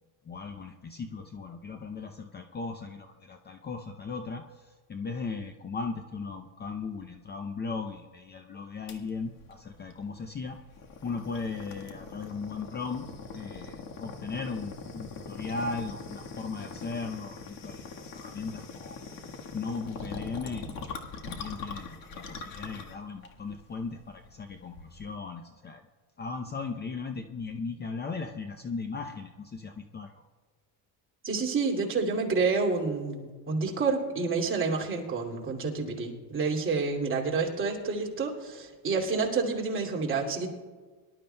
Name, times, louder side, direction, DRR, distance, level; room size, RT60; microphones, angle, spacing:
voice 1, 0.2-10.6 11.0-13.0 13.3-19.0 19.5-25.8 26.2-30.1, left 4 dB, 25° left, 5 dB, 0.6 m, -37 dB
sound 1, 8.9-25.2, left 4 dB, 50° left, 1.6 m, -43 dB
voice 2, 31.2-40.5, right 4 dB, 30° right, -2 dB, 2.6 m, -29 dB
24.0 x 12.0 x 2.3 m, 1.5 s
cardioid pair, 135°, 43 cm